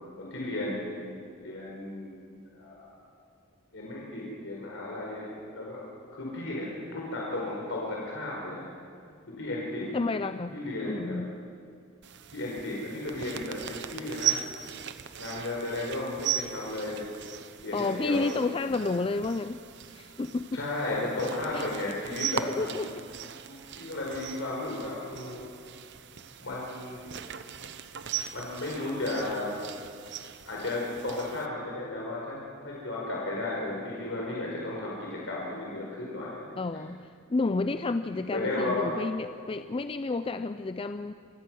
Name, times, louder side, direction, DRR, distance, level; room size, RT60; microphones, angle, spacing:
voice 1, 0.2-0.9 1.4-2.2 2.5-3.0 3.7-5.8 6.1-8.7 9.4-9.9 10.5-11.2 12.3-14.4 15.2-17.0 17.6-18.9 20.5-22.8 23.4-25.5 26.4-27.1 28.3-29.6 30.5-36.6 38.0-38.9, left 2 dB, 65° left, -4 dB, 4.5 m, -34 dB
voice 2, 9.9-10.6 10.8-11.3 17.7-19.6 19.9-20.6 21.5-21.7 22.6-22.9 36.6-41.1, left 3 dB, 25° left, 10 dB, 0.4 m, -30 dB
sound 1, 12.0-31.5, right 10 dB, 60° right, 0.9 m, -38 dB
26.0 x 16.5 x 6.3 m, 2.3 s
head